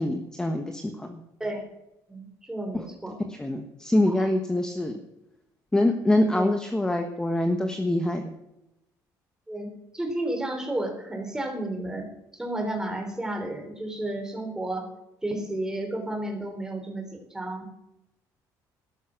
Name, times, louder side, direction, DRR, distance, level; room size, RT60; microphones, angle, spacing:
voice 1, 0.0-1.2 2.7-2.8 3.4-4.9 5.7-8.3, left 1 dB, 10° left, 5 dB, 1.3 m, -25 dB
voice 2, 2.1-3.2 4.1-4.3 6.3-6.5 9.5-12.1 12.3-14.9 15.2-17.7, right 1 dB, 10° right, 4 dB, 3.5 m, -32 dB
13.0 x 12.0 x 6.0 m, 0.89 s
cardioid pair, 130°, 7 cm